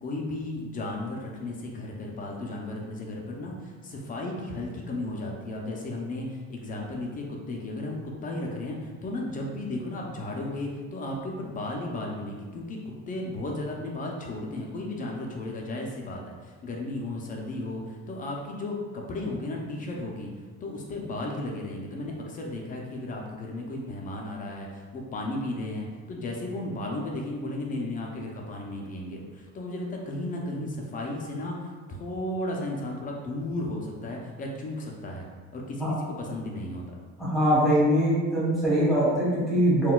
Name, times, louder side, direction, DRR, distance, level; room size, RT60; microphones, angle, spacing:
voice 1, 0.0-12.8 13.1-20.3 20.6-31.6 31.9-35.3 35.5-37.0, left 1 dB, 30° left, -1 dB, 0.4 m, -34 dB
voice 2, 37.2-39.9, equal, ahead, -9 dB, 1.0 m, -22 dB
3.8 x 2.2 x 2.2 m, 1.4 s
cardioid pair, 150°, 30 cm